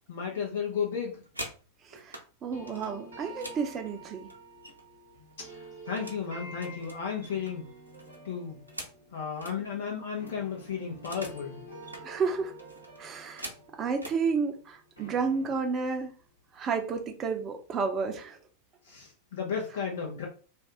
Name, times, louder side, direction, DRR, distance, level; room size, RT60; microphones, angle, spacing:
voice 1, 0.1-1.2 5.5-7.7 8.2-8.6 9.1-11.6 18.9-20.3, left 6 dB, 60° left, -1 dB, 0.8 m, -34 dB
sound 1, 1.0-2.3 2.7-5.0 5.3-6.2 6.6-9.6 10.0-10.1 10.3-11.5 11.7-12.1 12.6-14.2 15.0-15.2 15.6-15.9 16.2-16.7, right 1 dB, 85° right, 0.6 m, -45 dB
voice 2, 1.8-4.3 12.0-12.6 13.0-13.5 13.8-16.1 16.5-18.4, right 5 dB, 25° right, 4 dB, 0.7 m, -31 dB
sound 2, 2.5-10.6 10.9-15.9, right 2 dB, 70° right, 1.0 m, -50 dB
sound 3, 7.9-9.3 10.2-14.1 15.0-15.6, right 1 dB, 80° left, 1.2 m, -52 dB
2.7 x 2.3 x 3.5 m, 0.36 s
figure-of-eight pair, 90°, 0 cm